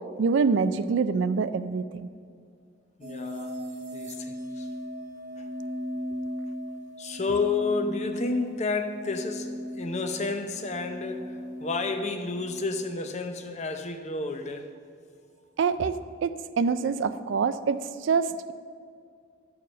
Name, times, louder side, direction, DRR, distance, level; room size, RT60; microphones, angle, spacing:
voice 1, 0.2-2.1 15.6-16.0 16.2-18.5, right 5 dB, 65° right, 12 dB, 0.3 m, -25 dB
voice 2, 3.0-4.7 5.4-5.5 7.0-14.7, left 3 dB, 35° left, 7 dB, 0.6 m, -31 dB
sound 1, 3.0-12.6, equal, 35° right, 0.7 m, -37 dB
11.5 x 4.7 x 6.1 m, 2.2 s
head